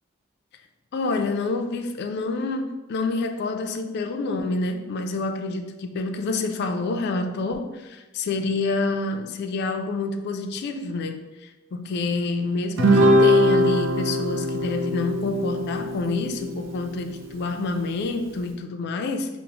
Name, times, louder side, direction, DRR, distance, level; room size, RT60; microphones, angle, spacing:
voice 1, 0.9-19.4, left 3 dB, 55° left, 0.3 m, -27 dB
Guitar, 12.8-17.4, equal, 65° right, 0.4 m, -22 dB
5.4 x 2.0 x 2.9 m
head